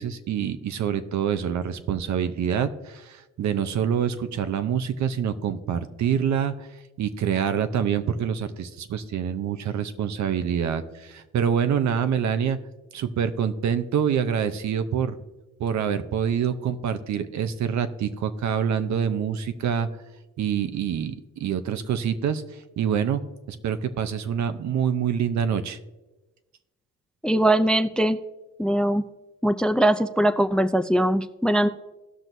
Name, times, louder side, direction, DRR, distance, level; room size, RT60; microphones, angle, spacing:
voice 1, 0.0-6.7 7.0-12.6 12.9-15.2 15.6-19.9 20.4-23.2 23.5-25.8, right 8 dB, 65° right, 11 dB, 0.8 m, -26 dB
voice 2, 27.2-28.2 28.6-29.0 29.4-31.7, right 1 dB, 5° left, 12 dB, 0.3 m, -21 dB
17.5 x 5.9 x 2.7 m, 1.1 s
cardioid pair, 90°, 30 cm